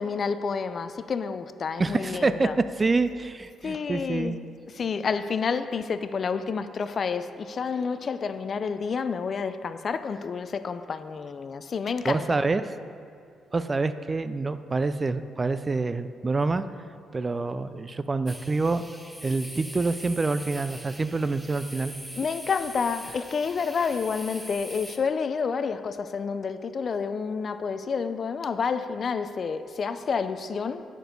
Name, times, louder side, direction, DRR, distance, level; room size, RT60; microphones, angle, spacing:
voice 1, 0.0-2.5 3.6-4.4 4.7-12.4 22.2-30.8, left 5 dB, 45° left, 12 dB, 0.4 m, -29 dB
voice 2, 1.8-4.4 12.1-12.7 13.5-16.6 17.1-18.8 19.2-22.0, right 3 dB, 25° right, 12 dB, 0.3 m, -26 dB
sound 1, 18.3-25.0, equal, 5° right, 0.7 m, -42 dB
9.2 x 6.1 x 5.2 m, 2.3 s
cardioid pair, 90°, 0 cm